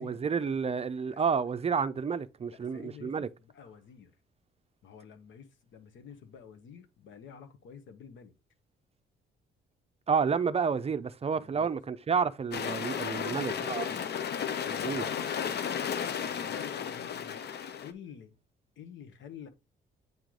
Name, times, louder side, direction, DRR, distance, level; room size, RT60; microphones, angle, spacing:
voice 1, 0.0-3.3 10.1-13.9 14.8-15.1, right 6 dB, 30° right, 0.5 m, -30 dB
voice 2, 0.7-1.2 2.5-4.1 4.8-8.3 11.3-11.7 13.1-14.1 14.6-18.3 18.8-19.5, left 7 dB, 75° left, 1.2 m, -50 dB
sound 1, 12.5-17.9, left 8 dB, 55° left, 0.7 m, -34 dB
8.9 x 3.1 x 3.8 m
cardioid pair, 90°, 20 cm